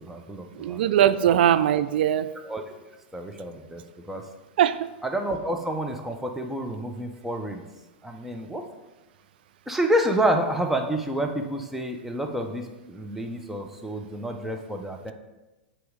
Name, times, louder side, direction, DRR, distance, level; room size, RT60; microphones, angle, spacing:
voice 1, 0.0-0.8 1.3-1.4 2.4-2.6 3.1-4.2 5.0-7.6 8.0-8.6 9.7-15.1, right 1 dB, 5° right, 0.8 m, -29 dB
voice 2, 0.6-2.3 4.6-4.9, right 11 dB, 70° right, 0.3 m, -21 dB
7.8 x 3.1 x 5.0 m
hypercardioid pair, 100°, 6 cm